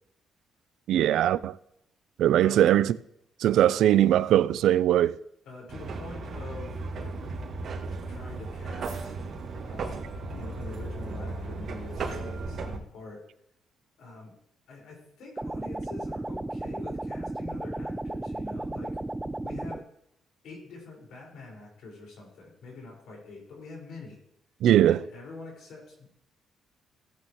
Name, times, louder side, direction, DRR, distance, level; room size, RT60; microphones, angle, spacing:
voice 1, 0.9-1.5 2.2-2.9 3.4-5.2 24.6-25.0, right 12 dB, 80° right, 0.4 m, -21 dB
voice 2, 5.4-7.1 8.1-9.2 9.6-13.2 14.0-14.3 14.7-19.0 19.2-19.8 20.4-24.2 24.8-26.1, left 3 dB, 75° left, 4.8 m, -45 dB
sound 1, 5.7-12.8, right 3 dB, 60° right, 1.9 m, -35 dB
sound 2, 15.4-19.8, right 2 dB, 15° right, 0.4 m, -34 dB
16.5 x 8.3 x 3.0 m
cardioid pair, 90°, 0 cm